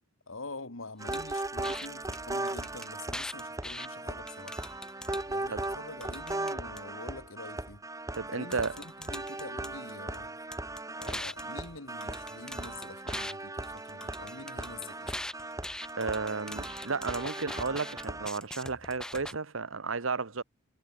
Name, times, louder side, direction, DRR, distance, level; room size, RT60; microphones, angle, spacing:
voice 1, 0.3-4.6 5.3-7.8 8.3-10.4 11.0-15.1, left 3 dB, 80° left, 2.5 m, -46 dB
sound 1, 1.0-18.3, right 2 dB, 15° right, 1.9 m, -38 dB
sound 2, 1.1-1.3 1.6-1.9 2.1-2.2 2.5-3.9 4.3-5.3 5.6-6.8 8.1-8.2 8.5-10.2 10.5-13.3 13.6-19.3, left 1 dB, 5° left, 0.8 m, -42 dB
voice 2, 8.1-8.7 16.0-20.4, right 4 dB, 90° right, 1.3 m, -33 dB
head